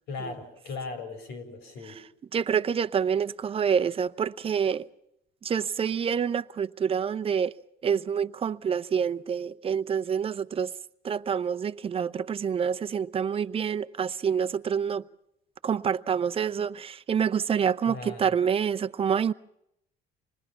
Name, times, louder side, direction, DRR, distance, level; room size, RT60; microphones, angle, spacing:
voice 1, 0.1-2.0 17.8-18.4, left 3 dB, 80° left, 4.6 m, -38 dB
voice 2, 2.3-4.9 5.4-7.5 7.8-10.7 11.0-15.0 15.6-19.3, right 7 dB, 35° right, 0.7 m, -27 dB
26.5 x 20.5 x 5.8 m
cardioid pair, 110°, 17 cm